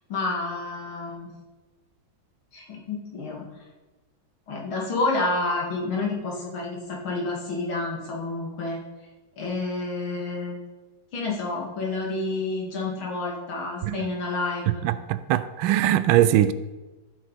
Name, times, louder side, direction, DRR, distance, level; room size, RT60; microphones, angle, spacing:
voice 1, 0.1-1.3 2.5-3.5 4.5-8.8 9.4-10.6 11.1-14.9, left 3 dB, 85° left, 3.0 m, -29 dB
voice 2, 14.7-16.5, right 12 dB, 80° right, 1.4 m, -21 dB
13.5 x 7.7 x 4.2 m
omnidirectional pair, 2.2 m